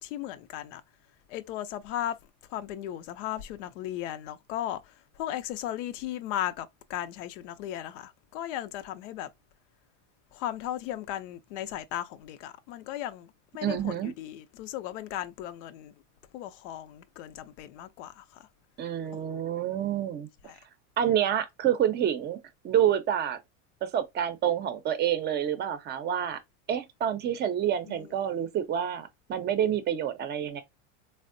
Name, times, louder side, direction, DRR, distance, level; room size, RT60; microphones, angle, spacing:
voice 1, 0.0-0.8 1.3-2.2 2.5-9.3 10.3-16.0 16.3-18.5 19.8-19.9 20.4-20.6 27.9-28.3, left 12 dB, 75° left, 0.6 m, -36 dB
voice 2, 13.6-14.1 18.8-20.3 21.0-22.4 22.6-23.4 23.8-26.4 26.7-30.6, right 10 dB, 30° right, 0.6 m, -28 dB
3.4 x 2.1 x 2.5 m
supercardioid pair, 115°, 37 cm